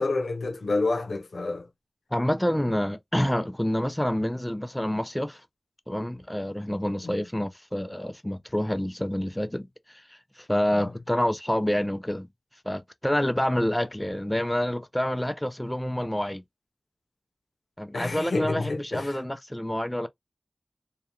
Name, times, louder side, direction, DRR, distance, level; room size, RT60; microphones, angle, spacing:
voice 1, 0.0-1.7 2.6-2.7 7.0-7.2 10.7-10.9 17.9-19.2, left 3 dB, 85° left, 0.6 m, -29 dB
voice 2, 2.1-5.4 5.9-12.3 12.7-16.4 17.8-20.1, left 1 dB, 10° left, 0.4 m, -28 dB
2.2 x 2.2 x 2.9 m
cardioid pair, 45°, 0 cm